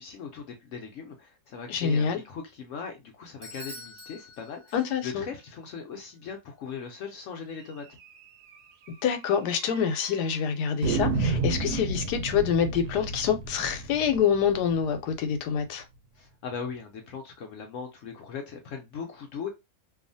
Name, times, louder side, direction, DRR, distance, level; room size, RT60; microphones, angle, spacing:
voice 1, 0.0-8.0 16.1-19.5, left 6 dB, 65° left, 0.8 m, -39 dB
voice 2, 1.7-2.2 4.7-5.3 9.0-15.8, left 7 dB, 90° left, 1.2 m, -26 dB
Bell / Doorbell, 3.4-5.3, left 1 dB, 45° right, 0.8 m, -46 dB
sound 1, 8.0-8.2 8.5-8.6 8.9-9.0 9.6-10.1 10.8-15.6, right 3 dB, 80° right, 1.1 m, -31 dB
2.7 x 2.4 x 2.5 m
omnidirectional pair, 1.7 m